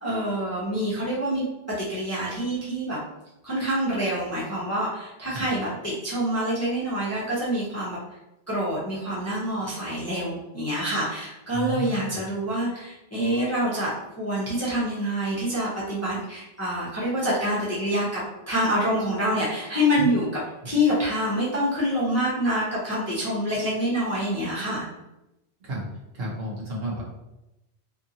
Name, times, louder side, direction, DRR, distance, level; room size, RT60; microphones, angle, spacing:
voice 1, 0.0-3.0 3.4-8.0 8.5-18.2 18.5-20.3 20.6-24.9, equal, 20° left, -7 dB, 0.6 m, -26 dB
voice 2, 11.5-12.2 20.0-20.1 25.6-25.8 26.1-27.0, right 1 dB, 65° right, -4 dB, 1.0 m, -32 dB
2.7 x 2.6 x 2.7 m, 0.93 s
omnidirectional pair, 1.1 m